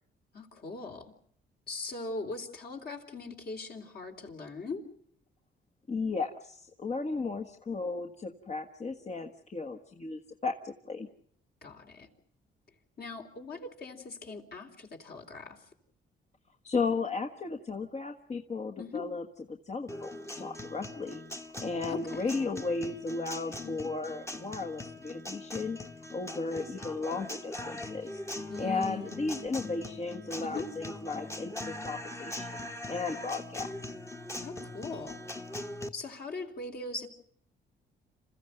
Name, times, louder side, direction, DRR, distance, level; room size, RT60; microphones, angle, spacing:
voice 1, 0.3-1.1 1.7-4.8 11.6-12.1 13.0-15.6 18.8-19.1 21.9-22.3 23.6-23.9 28.5-29.4 30.4-30.7 34.4-35.2 35.9-37.1, left 3 dB, 50° left, 3 dB, 3.6 m, -40 dB
voice 2, 5.9-11.1 16.6-19.2 19.5-21.2 21.6-25.8 26.1-32.6 32.9-33.9, left 4 dB, 35° left, 3 dB, 1.5 m, -35 dB
Guitar, 19.9-35.9, left 1 dB, 15° left, 1.4 m, -41 dB
27.5 x 15.0 x 9.0 m, 0.66 s
cardioid pair, 90°, 20 cm